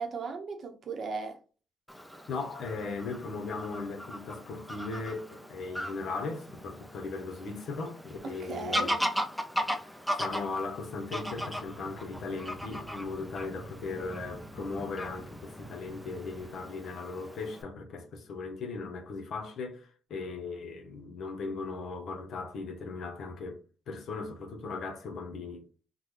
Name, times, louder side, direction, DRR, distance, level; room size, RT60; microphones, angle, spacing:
voice 1, 0.0-1.4 8.2-9.0, right 4 dB, 55° right, 0.8 m, -37 dB
Fowl / Bird vocalization bird call bird song, 1.9-17.6, equal, ahead, 0.5 m, -38 dB
voice 2, 2.3-9.0 10.1-25.6, left 4 dB, 65° left, 0.9 m, -38 dB
sound 1, 11.2-16.5, right 1 dB, 20° right, 1.1 m, -51 dB
3.7 x 2.2 x 3.2 m
cardioid pair, 90°, 0 cm